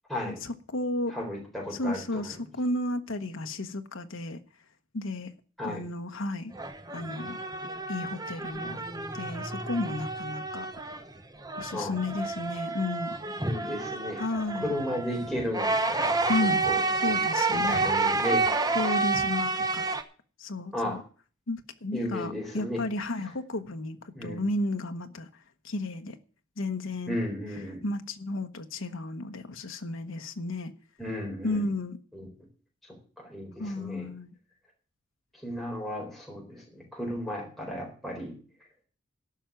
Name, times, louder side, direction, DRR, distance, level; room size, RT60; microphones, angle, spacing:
voice 1, 0.1-1.1 1.7-4.4 4.9-5.3 5.6-6.5 6.9-7.4 7.9-8.8 9.1-10.7 11.6-13.1 14.2-14.7 16.3-16.6 17.0-17.9 18.7-19.8 20.4-21.0 21.5-25.3 25.6-26.2 26.6-27.2 27.8-30.7 31.4-32.0 33.6-34.3, left 2 dB, 80° left, 1.0 m, -33 dB
voice 2, 1.1-2.4 5.6-5.8 11.7-11.9 13.4-14.2 14.6-16.2 16.6-17.1 17.5-18.7 20.7-21.0 21.9-22.8 24.1-24.4 27.1-27.8 31.0-31.7 32.1-32.3 33.2-34.1 35.3-38.3, left 1 dB, ahead, 4.1 m, -34 dB
sound 1, 6.5-11.1 11.4-20.0, right 3 dB, 20° right, 0.9 m, -29 dB
13.5 x 5.8 x 9.0 m
head